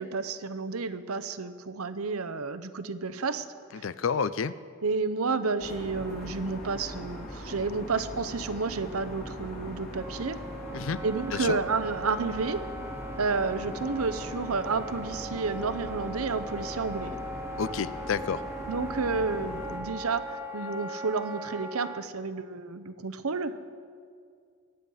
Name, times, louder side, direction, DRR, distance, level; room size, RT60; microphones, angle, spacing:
voice 1, 0.0-3.5 3.8-3.9 4.8-10.4 11.0-12.6 13.2-17.2 18.7-23.6, right 4 dB, 85° right, 12 dB, 0.8 m, -31 dB
voice 2, 3.7-4.5 10.7-11.0 11.3-11.6 17.6-18.4, left 6 dB, 60° left, 15 dB, 0.5 m, -30 dB
sound 1, 5.6-19.8, equal, 45° left, 3.5 m, -40 dB
Wind instrument woodwind instrument, 10.0-22.0, right 1 dB, 10° right, 0.5 m, -40 dB
23.0 x 9.2 x 5.6 m, 2.2 s
head